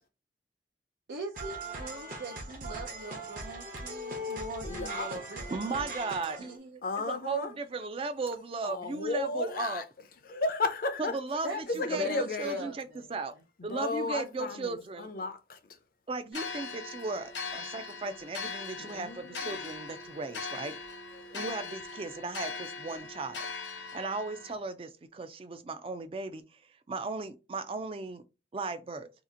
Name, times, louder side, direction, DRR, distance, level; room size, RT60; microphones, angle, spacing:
voice 1, 1.1-5.9 6.4-6.8 11.4-11.6 11.9-13.2, right 1 dB, 85° right, 0.6 m, -41 dB
sound 1, 1.3-6.6, right 1 dB, 50° right, 0.8 m, -39 dB
voice 2, 4.6-5.1 6.8-7.5 8.6-9.8 10.2-12.7 13.6-15.8 18.8-19.7 21.1-21.5, left 3 dB, 50° left, 0.5 m, -34 dB
voice 3, 5.5-6.6 7.1-9.8 11.1-13.3 13.6-15.1 16.1-20.8 21.3-23.5 23.8-26.4 26.9-28.2 28.5-29.1, right 3 dB, 30° right, 0.4 m, -36 dB
sound 2, 16.3-24.5, left 4 dB, 75° left, 0.8 m, -40 dB
2.8 x 2.4 x 3.7 m
head